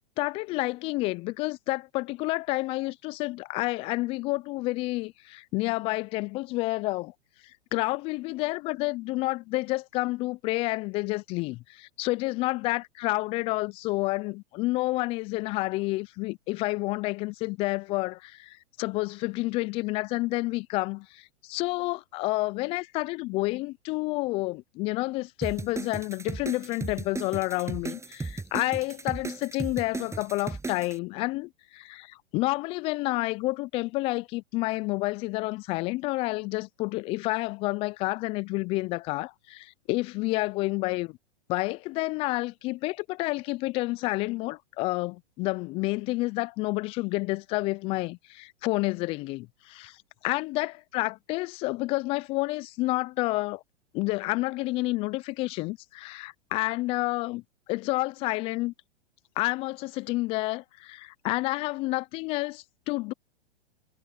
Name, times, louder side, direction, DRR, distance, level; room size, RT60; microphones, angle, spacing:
voice 1, 0.2-7.1 7.7-41.2 41.5-50.0 50.2-53.6 53.9-57.4 57.7-58.7 59.4-63.1, left 21 dB, 20° left, 0.3 m, -29 dB
sound 1, 25.4-31.0, right 3 dB, 10° right, 6.8 m, -36 dB
hypercardioid pair, 115°, 33 cm